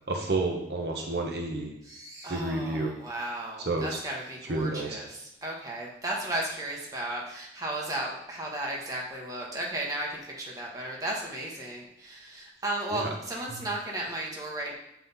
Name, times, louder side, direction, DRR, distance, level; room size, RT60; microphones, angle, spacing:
voice 1, 0.1-1.7 2.3-2.9 3.6-4.0 4.5-5.0 12.9-13.1 13.5-13.6, right 2 dB, 60° right, 1 dB, 1.0 m, -30 dB
voice 2, 1.8-14.7, right 1 dB, 20° right, -3 dB, 1.1 m, -35 dB
7.5 x 4.1 x 4.1 m, 0.81 s
head